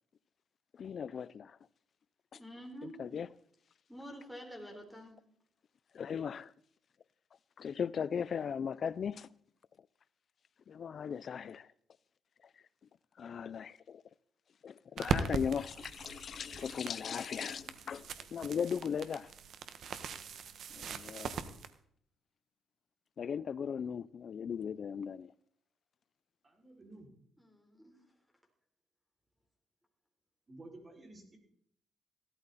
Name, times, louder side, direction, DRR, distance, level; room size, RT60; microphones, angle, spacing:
voice 1, 0.7-1.6 2.3-2.4 3.0-3.3 5.9-6.5 7.6-9.3 10.7-11.7 13.2-14.0 14.6-19.3 20.7-21.4 23.2-25.3, left 7 dB, 55° left, 0.5 m, -38 dB
voice 2, 2.3-3.0 3.9-5.2 27.4-28.0, equal, ahead, 3.8 m, -48 dB
sound 1, 15.0-21.7, right 6 dB, 65° right, 1.3 m, -40 dB
voice 3, 26.4-27.1 30.5-31.4, right 2 dB, 30° right, 5.3 m, -53 dB
16.5 x 13.0 x 4.1 m
cardioid pair, 90°, 0 cm